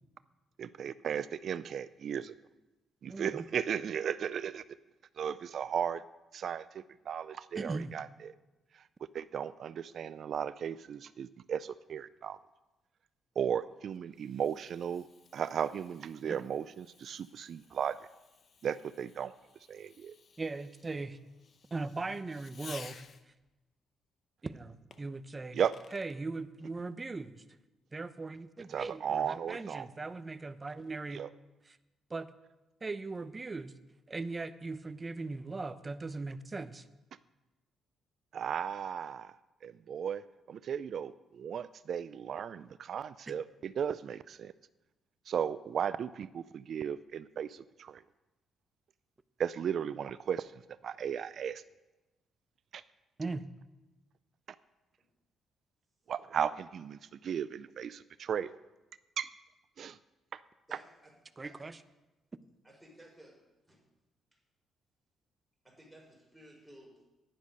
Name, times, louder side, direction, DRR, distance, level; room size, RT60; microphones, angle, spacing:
voice 1, 0.6-2.4 3.0-4.6 5.2-6.0 6.3-8.3 8.7-8.8 9.1-12.4 13.4-15.1 15.3-18.0 18.6-19.3 19.7-20.1 25.5-25.7 28.7-29.9 31.1-31.3 38.3-39.3 39.6-40.2 40.5-44.5 45.3-48.0 49.4-50.5 50.8-51.6 52.7-52.8 56.1-58.6 59.2-59.3 59.8-60.0 60.3-60.4, right 8 dB, 60° right, 15 dB, 0.3 m, -35 dB
voice 2, 3.0-3.5 7.6-7.9 16.2-16.4 20.4-21.2 21.7-23.0 24.4-25.6 25.9-27.4 27.9-31.2 31.7-31.8 32.1-32.3 32.8-33.7 34.1-36.9 43.3-43.4 53.2-53.4 61.4-61.8, right 3 dB, 25° right, 13 dB, 0.7 m, -39 dB
Fireworks, 13.5-23.5 24.9-26.2, left 6 dB, 50° left, 0.8 m, -56 dB
voice 3, 60.7-61.1 61.4-61.6 62.6-63.8 65.6-67.2, right 1 dB, 5° right, -3 dB, 4.9 m, -57 dB
10.5 x 10.0 x 5.4 m, 1.1 s
cardioid pair, 90°, 0 cm